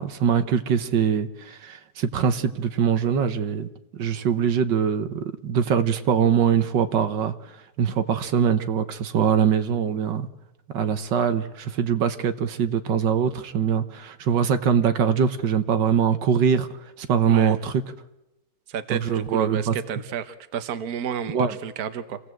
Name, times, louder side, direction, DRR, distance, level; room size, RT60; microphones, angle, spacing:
voice 1, 0.0-7.3 7.8-10.3 10.7-16.7 17.0-17.8 18.9-19.7 21.3-21.5, right 7 dB, 80° right, 9 dB, 1.7 m, -23 dB
voice 2, 18.7-22.2, right 7 dB, 60° right, 10 dB, 1.5 m, -31 dB
27.0 x 17.0 x 7.7 m, 0.96 s
omnidirectional pair, 1.9 m